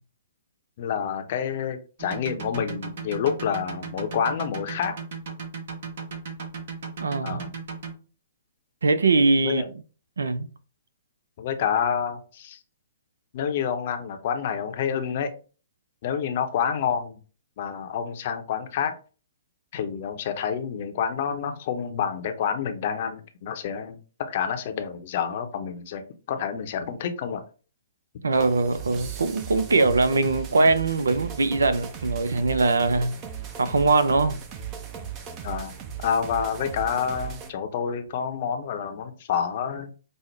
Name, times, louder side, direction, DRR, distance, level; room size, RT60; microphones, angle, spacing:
voice 1, 0.8-5.0 7.2-7.5 9.4-9.7 11.4-12.6 13.3-15.3 16.0-17.2 17.6-18.9 19.7-27.4 35.4-35.7 36.0-39.9, left 7 dB, 50° left, 0.6 m, -28 dB
sound 1, 2.0-7.9, right 6 dB, 55° right, 1.1 m, -35 dB
voice 2, 7.0-7.5 8.8-9.6 10.2-10.5 28.2-33.1 33.6-34.4, right 3 dB, 75° right, 0.4 m, -22 dB
sound 2, 28.3-37.5, right 8 dB, 30° right, 0.6 m, -37 dB
5.2 x 2.1 x 3.2 m
figure-of-eight pair, 125°, 0 cm